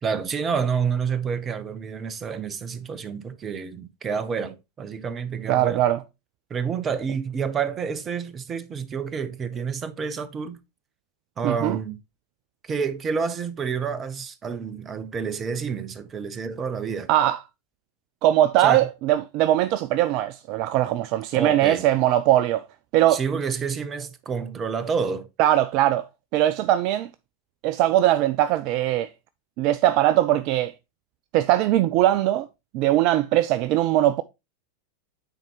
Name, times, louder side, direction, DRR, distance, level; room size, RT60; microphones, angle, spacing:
voice 1, 0.0-5.8 6.5-10.6 11.4-12.0 12.6-17.1 18.6-18.9 21.3-21.8 23.1-25.3, right 6 dB, 25° right, 0.7 m, -29 dB
voice 2, 5.5-6.0 11.4-11.8 17.1-17.4 18.2-22.6 22.9-23.2 25.4-27.1 27.6-29.1 29.6-30.7 31.3-32.5 32.7-34.2, right 13 dB, 40° right, 0.3 m, -21 dB
9.0 x 4.2 x 3.0 m
figure-of-eight pair, 90°, 0 cm